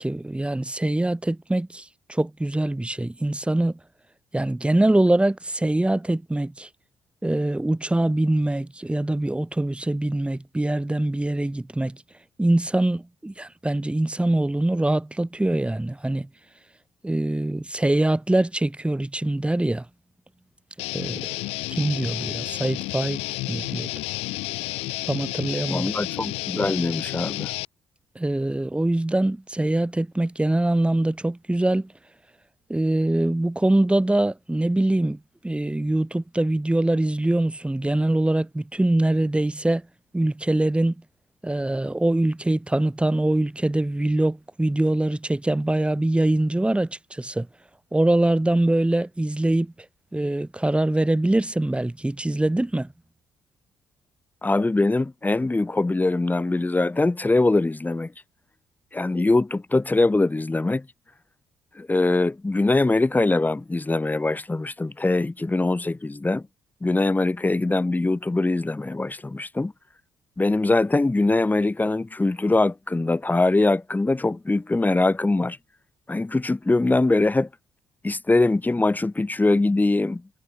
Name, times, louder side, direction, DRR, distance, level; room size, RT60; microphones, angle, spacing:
voice 1, 0.0-3.8 4.3-6.7 7.2-12.0 12.4-16.3 17.0-19.9 20.9-21.4 21.7-23.2 23.5-23.9 25.1-25.9 28.2-31.9 32.7-39.8 40.1-41.0 41.4-47.5 47.9-49.7 50.1-52.9, right 1 dB, 10° right, 1.8 m, -23 dB
Guitar, 20.8-27.7, left 21 dB, 70° left, 0.9 m, -31 dB
voice 2, 25.7-27.5 54.4-58.1 58.9-60.9 61.7-66.5 66.8-69.7 70.4-75.6 76.1-77.5 78.0-80.2, left 2 dB, 15° left, 1.3 m, -22 dB
figure-of-eight pair, 45°, 11 cm